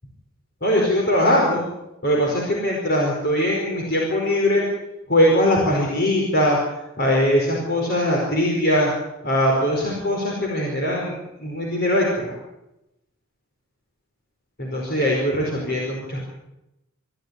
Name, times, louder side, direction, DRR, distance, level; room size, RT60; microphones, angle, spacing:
voice 1, 0.6-1.6 2.0-4.6 5.1-8.9 9.2-11.1 11.4-12.3 14.6-16.2, left 1 dB, 50° left, -1 dB, 4.9 m, -21 dB
26.5 x 13.0 x 8.3 m, 0.89 s
head